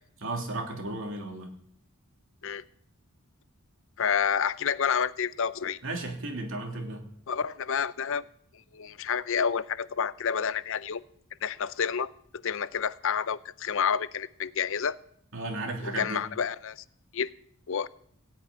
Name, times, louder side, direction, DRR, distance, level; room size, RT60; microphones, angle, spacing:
voice 1, 0.2-1.5 5.8-7.1 15.3-16.2, right 2 dB, 60° right, 2 dB, 2.9 m, -34 dB
voice 2, 4.0-5.8 7.3-8.2 8.7-11.0 11.4-12.1 12.4-15.0 15.8-16.8 17.1-17.3 17.7-17.9, left 7 dB, 60° left, 17 dB, 0.5 m, -29 dB
17.5 x 6.0 x 9.3 m, 0.66 s
head